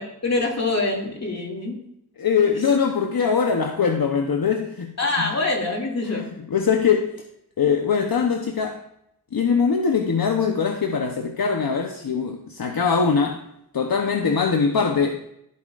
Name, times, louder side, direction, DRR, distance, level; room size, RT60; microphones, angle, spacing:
voice 1, 0.0-1.8 5.0-6.3, left 2 dB, 40° left, 2.5 m, -25 dB
voice 2, 2.2-4.9 5.2-5.3 6.0-7.1 7.6-8.8 9.3-13.4 13.7-15.3, left 6 dB, 65° left, 0.9 m, -22 dB
14.5 x 8.6 x 2.5 m
wide cardioid pair, 80°, 39 cm